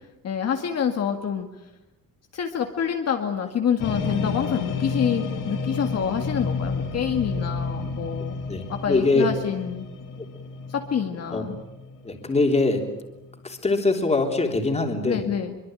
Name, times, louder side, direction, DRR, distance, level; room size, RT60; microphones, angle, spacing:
voice 1, 0.2-1.5 2.3-8.3 8.7-9.9 10.7-11.6 15.1-15.6, left 7 dB, 50° left, 4 dB, 2.0 m, -27 dB
sound 1, 3.8-13.5, left 4 dB, 65° left, 4.0 m, -31 dB
voice 2, 8.5-9.3 11.3-11.4 12.0-12.9 13.4-15.2, left 3 dB, 20° left, 4 dB, 3.5 m, -23 dB
26.0 x 24.0 x 9.1 m, 0.94 s
cardioid pair, 175°, 34 cm